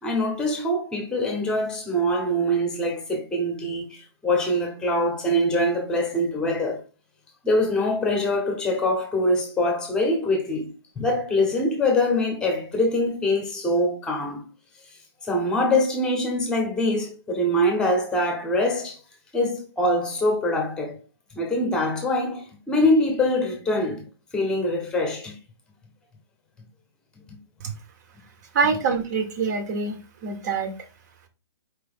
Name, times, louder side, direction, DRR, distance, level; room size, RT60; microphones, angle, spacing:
voice 1, 0.0-6.8 7.4-14.4 15.2-19.0 19.3-21.0 21.3-24.0 24.3-25.3 27.3-27.4, left 1 dB, 5° left, 0.9 m, -24 dB
voice 2, 28.5-30.0 30.2-30.7, right 5 dB, 40° right, 0.9 m, -24 dB
4.7 x 3.0 x 3.5 m
hypercardioid pair, 160°, 14 cm